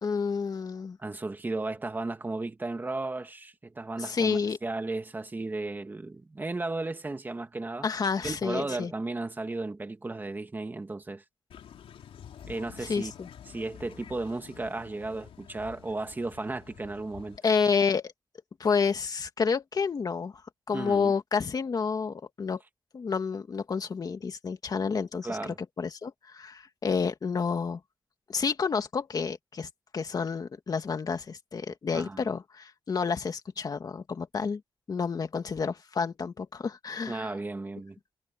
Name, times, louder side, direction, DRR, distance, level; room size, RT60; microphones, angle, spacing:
voice 1, 0.0-1.0 4.0-4.6 7.8-8.9 12.8-13.3 17.4-18.1 18.6-20.3 20.7-22.6 22.9-27.8 28.3-34.6 34.9-37.3, left 5 dB, 45° left, 2.3 m, -29 dB
voice 2, 1.0-7.9 8.2-11.2 12.4-13.1 13.5-17.4 20.7-21.1 25.2-25.6 31.9-32.4 37.1-38.0, right 2 dB, 20° right, 2.0 m, -35 dB
sound 1, 11.5-17.4, left 9 dB, 90° left, 3.6 m, -49 dB
wide cardioid pair, 145°, 9 cm